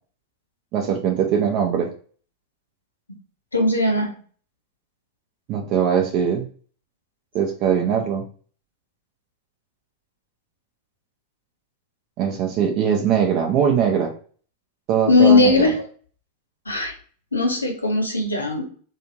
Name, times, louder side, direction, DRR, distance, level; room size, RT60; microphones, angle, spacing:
voice 1, 0.7-1.9 5.5-6.5 7.3-8.2 12.2-14.1 14.9-15.7, right 8 dB, 40° right, 1 dB, 0.5 m, -21 dB
voice 2, 3.5-4.1 15.1-15.7 16.7-16.9 17.3-18.6, left 3 dB, 85° left, 3 dB, 0.8 m, -18 dB
3.3 x 2.8 x 2.7 m, 0.43 s
figure-of-eight pair, 90°, 0 cm